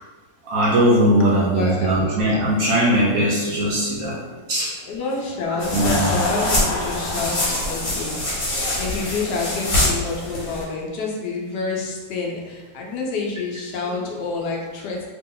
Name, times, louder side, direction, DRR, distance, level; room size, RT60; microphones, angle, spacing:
voice 1, 0.4-4.2 4.5-4.7 5.7-6.1, right 1 dB, 75° right, -4 dB, 0.8 m, -19 dB
voice 2, 1.4-1.9 3.2-3.4 4.2-4.5 4.9-15.1, left 3 dB, 70° left, -2 dB, 1.1 m, -28 dB
Laughter / Crowd, 5.3-9.8, left 2 dB, 85° left, 0.8 m, -30 dB
sound 1, 5.6-10.6, left 1 dB, 45° left, 1.1 m, -25 dB
2.9 x 2.9 x 3.7 m, 1.3 s
omnidirectional pair, 2.2 m